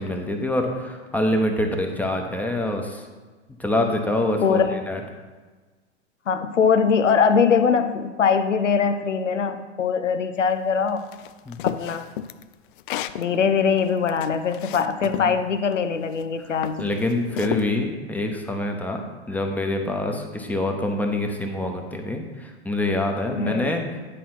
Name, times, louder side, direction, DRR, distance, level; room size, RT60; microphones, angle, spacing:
voice 1, 0.0-3.1 3.6-5.0 11.5-11.7 15.0-15.1 16.4-19.0 19.3-24.0, left 1 dB, 5° left, 3 dB, 0.9 m, -26 dB
voice 2, 4.4-4.8 6.3-11.1 11.6-12.0 13.2-16.8 23.3-23.7, left 6 dB, 85° left, 9 dB, 0.7 m, -22 dB
sound 1, 11.1-13.2 13.8-15.3 16.0-16.2 16.6-17.7, left 11 dB, 45° left, 0.4 m, -32 dB
10.0 x 4.2 x 5.9 m, 1.3 s
figure-of-eight pair, 100°, 36 cm